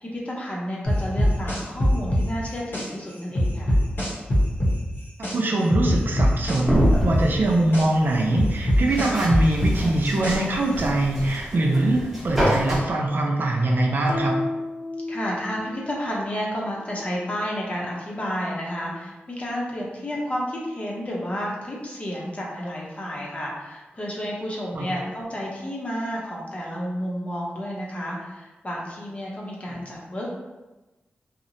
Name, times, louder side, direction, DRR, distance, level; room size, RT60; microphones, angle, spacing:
voice 1, 0.0-3.7 15.1-30.3, equal, 35° left, -3 dB, 0.7 m, -31 dB
sound 1, 0.9-2.9 3.4-5.4 5.7-7.9 8.4-10.6, equal, 60° left, 0.8 m, -21 dB
voice 2, 5.3-14.4 24.7-25.0 29.7-29.8, right 2 dB, 55° right, 0 dB, 0.4 m, -23 dB
sound 2, 6.6-12.8, equal, 5° right, 1.0 m, -28 dB
sound 3, 14.1-15.9, left 2 dB, 85° left, 0.3 m, -31 dB
2.8 x 2.0 x 2.6 m, 1.1 s
wide cardioid pair, 80°, 4 cm